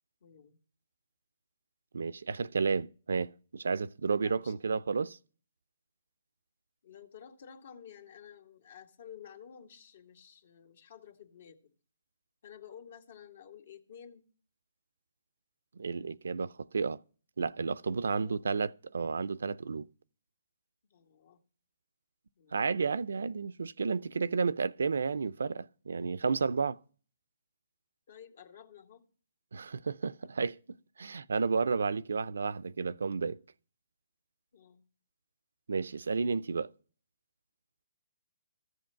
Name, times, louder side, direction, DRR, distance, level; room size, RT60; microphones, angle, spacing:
voice 1, 0.2-0.6 4.2-4.5 6.8-11.7 12.4-14.2 18.0-18.4 20.8-21.4 22.4-22.6 28.1-29.1 30.2-30.3 34.5-34.9, left 8 dB, 60° left, 2.1 m, -52 dB
voice 2, 1.9-5.2 15.8-17.0 17.4-19.9 22.5-26.8 29.5-33.4 35.7-36.7, right 5 dB, 80° right, 0.5 m, -32 dB
14.5 x 7.9 x 5.7 m
hypercardioid pair, 155°, 0 cm